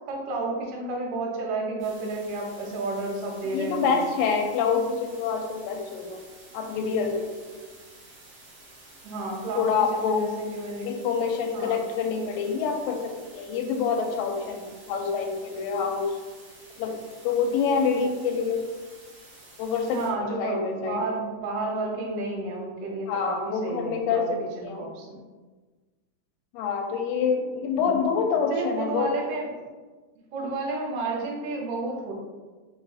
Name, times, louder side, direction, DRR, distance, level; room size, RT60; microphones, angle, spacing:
voice 1, 0.1-4.0 9.0-10.9 11.5-11.8 19.9-25.2 27.7-28.1 28.5-29.5 30.3-32.1, right 2 dB, 75° right, -1 dB, 2.2 m, -31 dB
sound 1, 1.8-20.1, right 2 dB, 50° right, 1.6 m, -51 dB
voice 2, 3.5-6.2 6.5-7.5 9.6-10.2 10.8-16.2 16.8-16.9 17.2-18.6 19.6-21.0 23.1-24.9 26.5-29.1, left 5 dB, 85° left, 3 dB, 2.3 m, -27 dB
5.1 x 4.0 x 2.4 m, 1.3 s
omnidirectional pair, 4.0 m